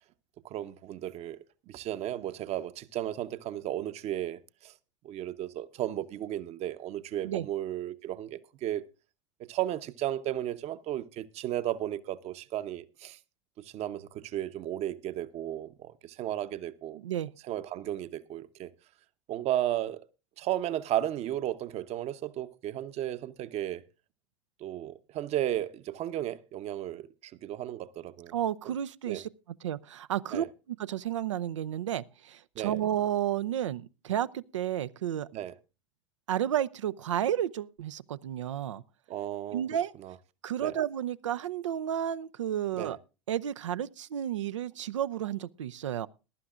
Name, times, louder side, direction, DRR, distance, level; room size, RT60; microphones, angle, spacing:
voice 1, 0.4-4.7 5.0-8.8 9.5-13.2 13.6-17.0 17.4-18.7 19.3-20.0 20.4-23.8 24.6-28.3 29.1-29.2 30.3-30.5 32.6-32.7 35.3-35.5 39.1-39.6 40.0-40.1 40.6-40.8 42.8-43.0, right 12 dB, 45° right, 0.9 m, -34 dB
voice 2, 16.9-17.3 28.3-29.3 29.6-30.4 30.9-35.3 36.3-38.8 39.5-39.9 40.4-43.0 43.3-46.1, right 11 dB, 75° right, 0.6 m, -32 dB
21.0 x 11.5 x 2.5 m
hypercardioid pair, 80°, 16 cm